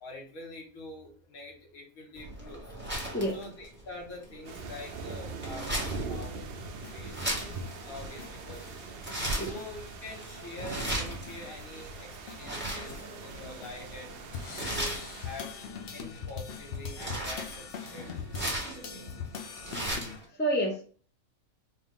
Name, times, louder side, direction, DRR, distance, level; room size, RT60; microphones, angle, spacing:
voice 1, 0.0-2.6 3.3-5.8 6.0-6.4 6.9-7.2 7.8-8.8 9.4-14.1 14.6-15.5 15.9-18.1 18.7-19.1, left 2 dB, 75° left, 0 dB, 1.6 m, -45 dB
sound 1, 2.2-20.2, right 1 dB, 10° right, 1.2 m, -38 dB
sound 2, 4.4-15.4, right 3 dB, 65° right, 0.6 m, -43 dB
sound 3, 6.0-8.8 9.2-9.7 10.1-10.2 10.4-13.7 14.3-20.2, left 6 dB, 60° left, 0.6 m, -43 dB
voice 2, 20.1-20.8, equal, 10° left, 0 dB, 0.6 m, -29 dB
4.3 x 2.3 x 3.6 m, 0.40 s
omnidirectional pair, 1.5 m